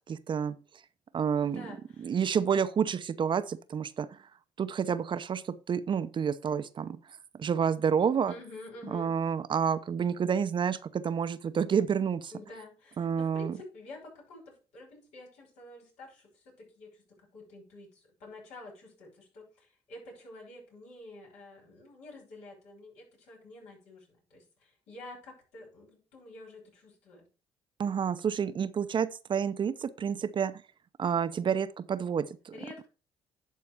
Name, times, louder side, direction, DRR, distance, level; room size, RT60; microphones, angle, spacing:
voice 1, 0.1-0.6 1.1-1.6 2.0-4.1 4.6-7.0 7.3-8.3 8.9-12.3 13.0-13.6 27.8-30.6 31.0-32.5, right 7 dB, 45° right, 0.7 m, -29 dB
voice 2, 1.4-2.2 8.2-9.1 12.3-27.3 32.5-32.9, left 2 dB, 80° left, 5.8 m, -49 dB
11.0 x 4.3 x 4.7 m
supercardioid pair, 75°, 11 cm